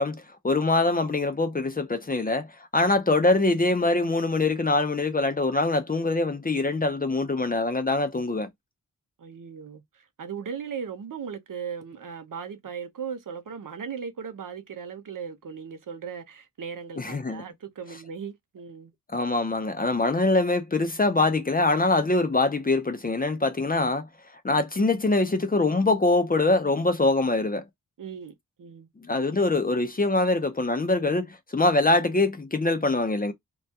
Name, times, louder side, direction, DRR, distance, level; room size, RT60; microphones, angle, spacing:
voice 1, 0.0-2.5 2.7-8.5 17.0-17.4 19.1-24.0 24.4-27.6 29.0-33.3, left 2 dB, 25° left, 0.5 m, -24 dB
voice 2, 9.2-18.9 28.0-28.9, right 6 dB, 65° right, 0.6 m, -38 dB
2.2 x 2.2 x 2.6 m
wide cardioid pair, 75°, 34 cm